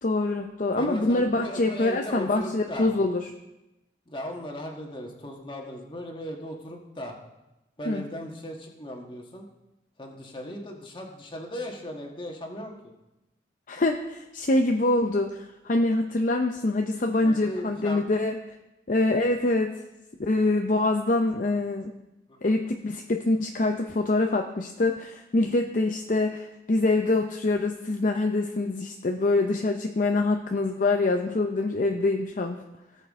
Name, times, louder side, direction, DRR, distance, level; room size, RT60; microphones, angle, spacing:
voice 1, 0.0-3.2 7.9-8.0 13.7-18.4 18.9-19.8 20.2-21.9 22.4-32.6, left 2 dB, 45° left, 4 dB, 0.6 m, -25 dB
voice 2, 0.8-2.9 4.1-7.1 7.8-9.4 10.0-12.9 17.2-18.0 22.3-22.5, equal, 30° left, 1 dB, 1.5 m, -37 dB
17.5 x 7.2 x 3.6 m, 0.97 s
head